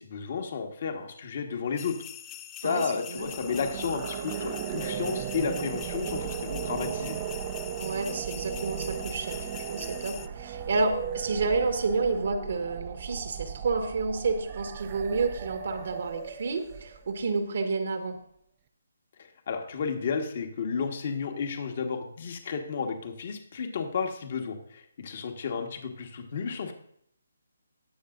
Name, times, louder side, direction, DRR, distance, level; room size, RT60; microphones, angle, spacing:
voice 1, 0.0-2.0 2.6-7.2 19.5-26.7, left 5 dB, 50° left, 5 dB, 1.5 m, -32 dB
sound 1, 1.8-10.3, left 11 dB, 15° left, 0.5 m, -44 dB
voice 2, 2.6-3.3 7.8-18.2, right 3 dB, 60° right, 6 dB, 1.5 m, -30 dB
sound 2, 3.1-17.3, right 9 dB, 30° right, 0.6 m, -36 dB
20.0 x 6.7 x 2.6 m, 0.71 s
figure-of-eight pair, 150°, 0 cm